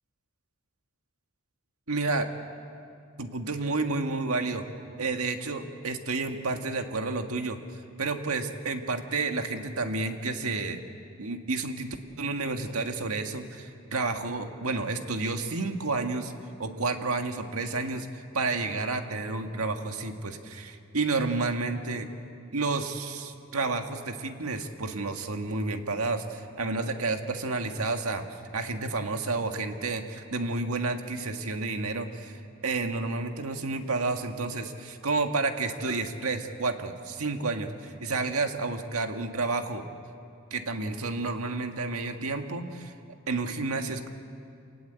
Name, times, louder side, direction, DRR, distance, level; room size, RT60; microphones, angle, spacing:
voice 1, 1.9-2.3 3.2-4.6 5.0-7.6 8.0-10.8 11.2-16.3 16.6-18.1 18.3-20.5 20.9-22.1 22.5-28.3 28.5-32.3 32.6-39.8 40.5-42.9 43.3-44.1, right 3 dB, 85° right, 5 dB, 1.7 m, -30 dB
27.5 x 19.0 x 8.2 m, 2.5 s
head